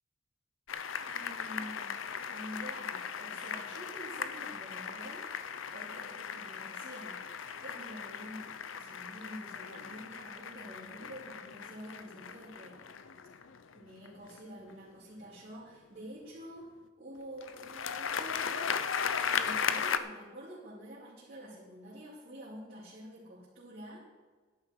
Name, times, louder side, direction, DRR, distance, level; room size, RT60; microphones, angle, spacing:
sound 1, 0.7-14.7 17.4-20.0, left 7 dB, 85° left, 0.6 m, -37 dB
voice 1, 1.0-2.0 2.3-7.2 7.6-12.9 13.7-16.7 17.0-18.8 19.2-24.0, equal, 50° right, -9 dB, 3.2 m, -48 dB
12.5 x 11.0 x 4.7 m, 1.4 s
head